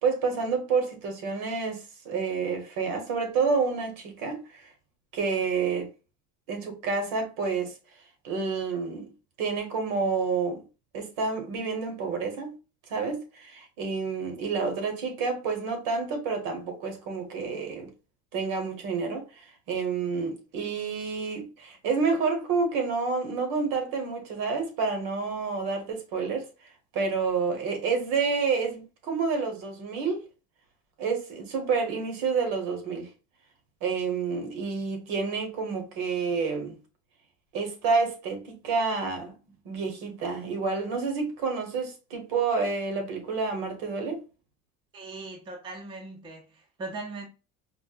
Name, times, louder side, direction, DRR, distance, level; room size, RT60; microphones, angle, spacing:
voice 1, 0.0-4.7 5.1-5.9 6.5-7.7 8.2-9.1 9.4-10.6 10.9-12.5 12.9-17.9 18.3-26.5 26.9-30.2 31.0-33.1 33.8-36.8 37.5-39.3 39.6-44.2, right 5 dB, 75° right, 1.1 m, -29 dB
voice 2, 44.9-47.3, right 3 dB, 15° right, 0.4 m, -39 dB
4.5 x 2.1 x 2.4 m
cardioid pair, 165°, 33 cm